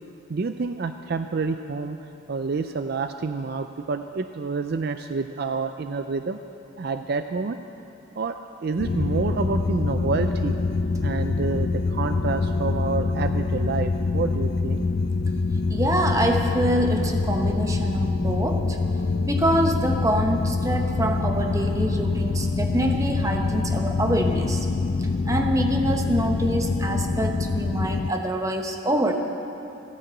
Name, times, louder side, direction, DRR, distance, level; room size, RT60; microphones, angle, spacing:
voice 1, 0.3-2.0 2.3-6.4 6.8-7.6 8.2-10.6 11.0-14.9, right 4 dB, 50° right, 8 dB, 0.4 m, -28 dB
sound 1, 8.8-28.1, left 3 dB, 50° left, 0.4 m, -25 dB
voice 2, 15.7-18.8 19.3-24.7 25.0-29.1, right 1 dB, 15° right, 3 dB, 1.0 m, -25 dB
15.0 x 9.8 x 7.8 m, 2.8 s
head